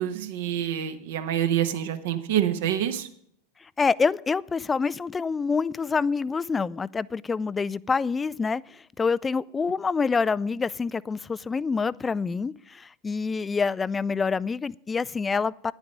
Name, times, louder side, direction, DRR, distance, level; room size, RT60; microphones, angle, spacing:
voice 1, 0.0-3.1, right 10 dB, 60° right, 1.2 m, -26 dB
voice 2, 3.8-15.7, left 5 dB, 15° left, 0.3 m, -26 dB
11.0 x 9.6 x 5.2 m
figure-of-eight pair, 80°, 0 cm